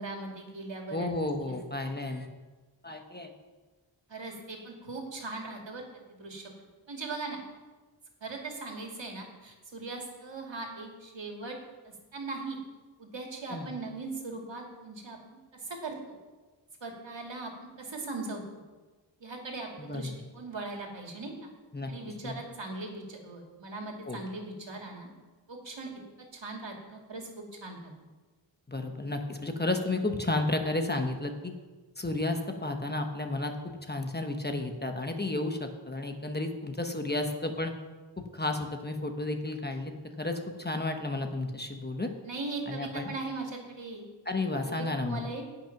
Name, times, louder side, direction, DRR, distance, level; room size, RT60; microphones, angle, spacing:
voice 1, 0.0-1.1 1.5-1.6 4.1-5.8 6.1-6.5 6.9-7.4 8.2-11.6 11.8-12.6 13.0-15.2 15.6-16.2 16.8-17.5 17.8-18.4 19.2-21.5 21.9-25.1 25.5-25.9 26.3-27.9 42.3-44.0 44.6-45.6, right 3 dB, 70° right, 1 dB, 2.5 m, -39 dB
voice 2, 0.9-2.3 2.8-3.3 13.5-13.7 19.8-20.2 21.7-21.9 22.2-22.3 24.1-24.2 28.7-31.5 32.0-37.7 38.2-39.9 40.2-42.1 42.7-43.1 44.2-45.2, left 2 dB, 20° left, 4 dB, 1.1 m, -32 dB
18.0 x 6.0 x 5.9 m, 1.3 s
wide cardioid pair, 100°, 45 cm